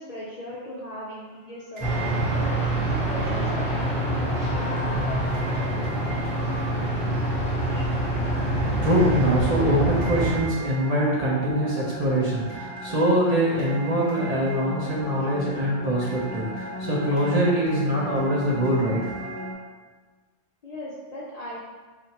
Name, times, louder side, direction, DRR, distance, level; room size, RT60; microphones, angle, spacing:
voice 1, 0.0-2.4 2.9-5.4 20.6-21.6, left 1 dB, 55° left, -6 dB, 0.4 m, -38 dB
sound 1, 1.0-19.5, right 1 dB, 20° right, 1.0 m, -38 dB
sound 2, 1.8-10.4, right 1 dB, 30° left, 1.0 m, -25 dB
voice 2, 8.8-19.1, right 1 dB, 45° right, -6 dB, 0.6 m, -23 dB
4.2 x 2.4 x 2.8 m, 1.4 s
omnidirectional pair, 1.2 m